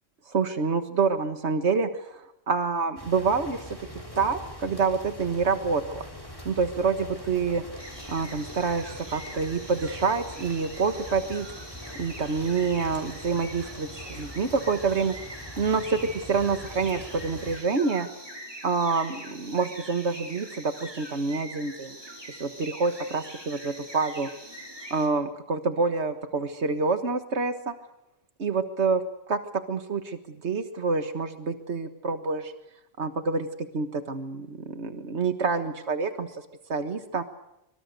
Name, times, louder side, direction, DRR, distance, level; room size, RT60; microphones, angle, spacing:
voice 1, 0.3-3.8 4.2-6.0 6.5-7.6 8.1-11.5 12.0-15.2 15.6-16.0 16.3-18.1 18.6-22.0 22.4-24.3 24.9-27.7 28.4-29.0 29.3-29.4 29.7-32.5 33.0-36.4 36.7-37.2, right 4 dB, 90° right, 9 dB, 1.8 m, -27 dB
sound 1, 3.0-17.6, equal, 20° left, 4.6 m, -43 dB
sound 2, 7.8-25.1, right 1 dB, 20° right, 4.2 m, -43 dB
25.0 x 25.0 x 6.7 m, 0.86 s
omnidirectional pair, 1.1 m